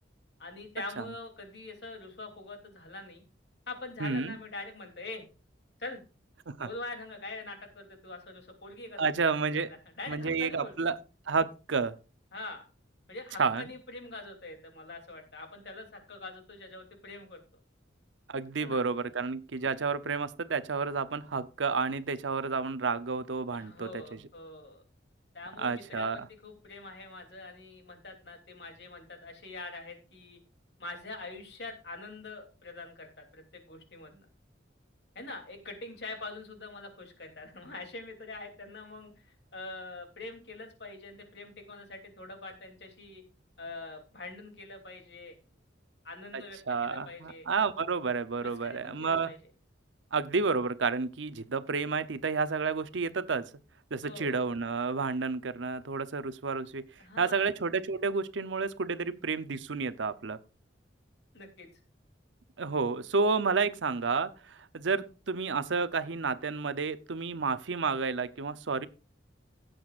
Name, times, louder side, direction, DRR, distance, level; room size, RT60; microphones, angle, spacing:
voice 1, 0.4-3.2 3.7-5.2 5.8-6.0 6.6-9.0 9.5-10.7 12.3-12.6 13.1-17.4 18.6-18.8 23.5-24.8 25.3-30.4 30.8-34.2 35.1-39.3 39.5-43.2 43.6-45.4 46.0-47.5 48.4-49.4 54.0-54.4 57.0-57.5 61.3-61.7, left 2 dB, 60° left, 3.0 m, -44 dB
voice 2, 4.0-4.4 6.5-6.7 9.0-9.7 10.1-11.0 11.3-12.0 13.4-13.6 18.3-24.0 25.6-26.2 46.3-49.3 50.1-53.5 53.9-56.8 57.2-60.4 62.6-68.9, right 4 dB, 75° right, 0.7 m, -30 dB
16.5 x 7.8 x 2.5 m
head